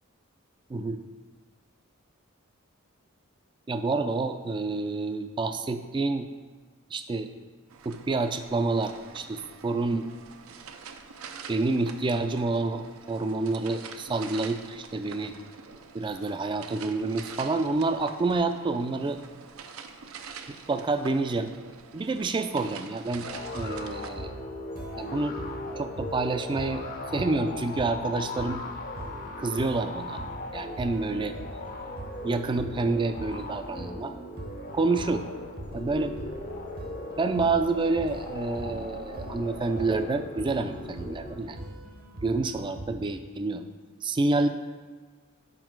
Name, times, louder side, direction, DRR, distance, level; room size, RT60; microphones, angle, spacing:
voice 1, 3.7-6.3 6.9-7.3 7.9-10.1 11.5-15.3 15.9-19.2 20.7-21.5 21.9-23.3 23.5-24.3 25.0-25.4 25.8-26.8 27.1-28.6 29.4-30.2 30.5-31.3 32.2-34.1 34.7-35.3 35.7-36.2 37.2-41.6 42.2-43.7 44.0-44.5, right 3 dB, 25° right, 8 dB, 0.3 m, -28 dB
sound 1, 7.7-24.1, right 6 dB, 80° right, 0.5 m, -45 dB
sound 2, 23.1-42.9, right 1 dB, 45° right, 0.7 m, -43 dB
sound 3, 23.2-41.6, left 2 dB, 40° left, 0.6 m, -39 dB
6.1 x 4.7 x 4.5 m, 1.4 s
head